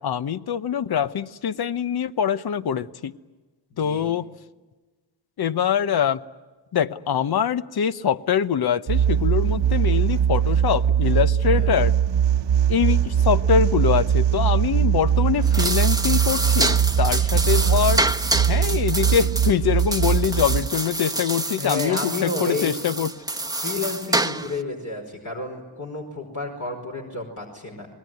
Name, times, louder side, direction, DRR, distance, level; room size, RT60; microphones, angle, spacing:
voice 1, 0.0-3.1 3.8-4.3 5.4-6.2 6.7-11.9 12.7-18.0 18.5-23.1, left 8 dB, 60° left, 14 dB, 1.0 m, -24 dB
voice 2, 3.7-4.1 11.4-11.7 21.6-22.8 23.6-27.9, left 2 dB, 45° left, 1 dB, 5.0 m, -31 dB
sound 1, 8.9-20.7, right 9 dB, 80° right, 1.0 m, -21 dB
sound 2, 15.3-24.6, right 2 dB, 10° right, 1.0 m, -27 dB
27.5 x 21.0 x 9.3 m, 1.3 s
cardioid pair, 70°, 42 cm